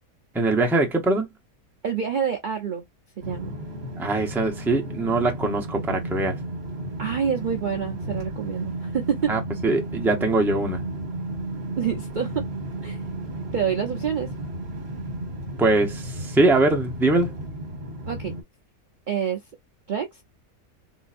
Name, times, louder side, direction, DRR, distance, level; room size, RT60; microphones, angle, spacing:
voice 1, 0.3-1.3 4.0-6.3 9.3-10.8 15.6-17.3, right 2 dB, 5° right, 0.4 m, -22 dB
voice 2, 1.8-2.8 3.2-3.5 7.0-9.3 11.8-12.4 12.8-13.0 13.5-14.3 18.1-18.4 19.1-19.4 19.9-20.2, right 7 dB, 80° right, 0.4 m, -27 dB
sound 1, 3.2-18.4, right 1 dB, 45° right, 1.2 m, -33 dB
3.8 x 2.6 x 2.4 m
omnidirectional pair, 1.7 m